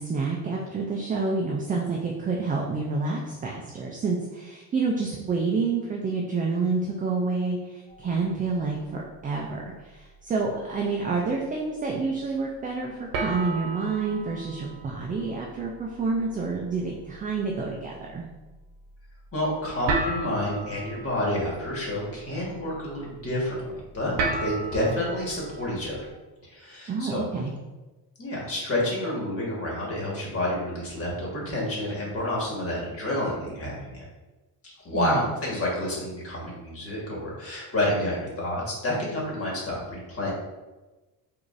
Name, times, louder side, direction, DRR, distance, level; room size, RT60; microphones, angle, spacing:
voice 1, 0.0-18.2 26.9-27.5 34.9-35.2, right 4 dB, 20° right, -1 dB, 0.3 m, -28 dB
sound 1, 7.9-9.4 9.8-10.2 10.7-10.8 13.1-26.1, right 3 dB, 70° right, 0.8 m, -36 dB
voice 2, 19.3-23.6 23.9-26.1 26.4-27.3 28.2-34.0 34.8-40.3, left 1 dB, 30° left, -3 dB, 1.5 m, -29 dB
4.7 x 2.6 x 2.5 m, 1.2 s
cardioid pair, 110°, 43 cm